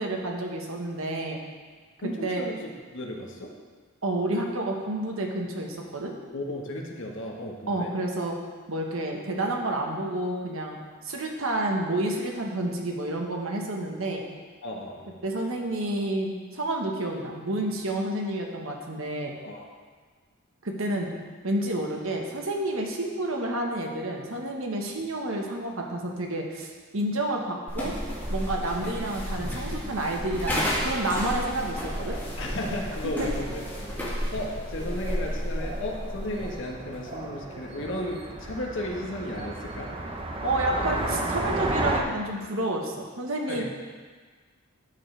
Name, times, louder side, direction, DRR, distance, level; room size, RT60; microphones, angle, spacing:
voice 1, 0.0-1.4 2.2-2.4 4.0-6.1 7.7-8.3 8.7-10.8 11.0-14.2 15.2-19.3 20.6-21.1 21.4-27.9 28.3-32.2 33.2-33.3 40.4-43.6, right 1 dB, 75° right, 1 dB, 1.3 m, -29 dB
voice 2, 2.0-3.5 6.3-7.9 14.6-15.1 19.4-19.7 32.4-39.9 43.5-43.6, left 1 dB, 65° left, 0 dB, 1.4 m, -35 dB
sound 1, 27.7-36.6, equal, 10° left, 2.0 m, -32 dB
sound 2, 27.7-42.0, right 2 dB, 25° right, 0.7 m, -35 dB
13.0 x 7.2 x 3.4 m, 1.5 s
head